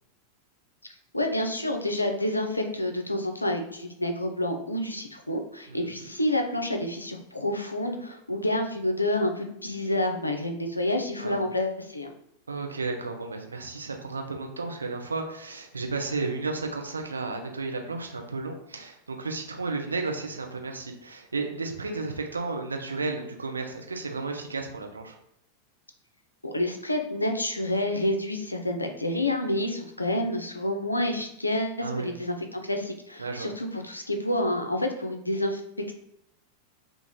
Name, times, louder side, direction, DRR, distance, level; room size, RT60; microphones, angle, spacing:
voice 1, 1.1-12.1 26.4-35.9, left 1 dB, 85° left, 4 dB, 0.4 m, -28 dB
voice 2, 5.7-6.1 11.2-11.4 12.5-25.2 31.8-32.1 33.2-33.5, right 3 dB, 75° right, 4 dB, 0.5 m, -33 dB
3.1 x 2.4 x 3.6 m, 0.78 s
figure-of-eight pair, 90°, 0 cm